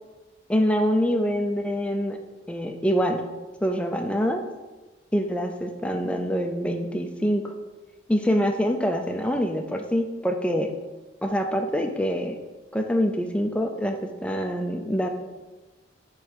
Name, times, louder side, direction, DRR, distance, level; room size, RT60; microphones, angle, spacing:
voice 1, 0.5-2.2 2.5-3.2 3.6-4.4 5.1-7.5 8.1-10.7 11.2-12.4 12.7-15.1, equal, 5° left, 4 dB, 0.4 m, -25 dB
5.0 x 4.1 x 4.7 m, 1.2 s
head